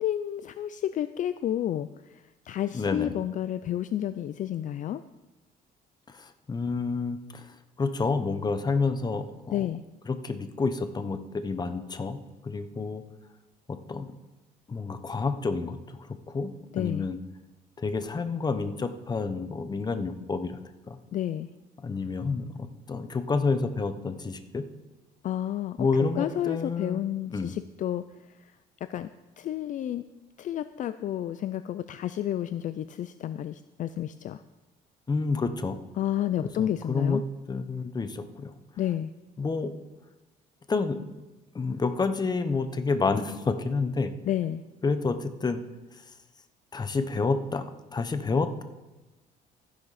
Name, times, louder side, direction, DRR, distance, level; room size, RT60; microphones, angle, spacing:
voice 1, 0.0-2.2 2.5-5.0 9.5-9.8 16.7-17.0 21.1-21.5 25.2-25.8 26.2-28.0 28.9-29.1 29.4-30.0 30.4-34.4 36.0-37.2 38.8-39.1 44.3-44.6, left 11 dB, 50° left, 12 dB, 0.4 m, -30 dB
voice 2, 2.7-3.1 6.1-7.5 7.8-9.7 10.1-12.2 12.4-13.0 13.7-14.1 14.7-16.0 16.3-17.2 17.8-20.6 20.9-21.0 21.8-24.6 25.8-27.0 27.3-27.5 35.1-35.8 36.4-37.2 37.5-38.5 39.4-39.7 40.7-41.0 41.5-44.1 44.8-45.6 46.7-48.6, left 4 dB, 25° left, 9 dB, 1.0 m, -29 dB
14.0 x 10.5 x 4.2 m, 1.1 s
cardioid pair, 110°, 17 cm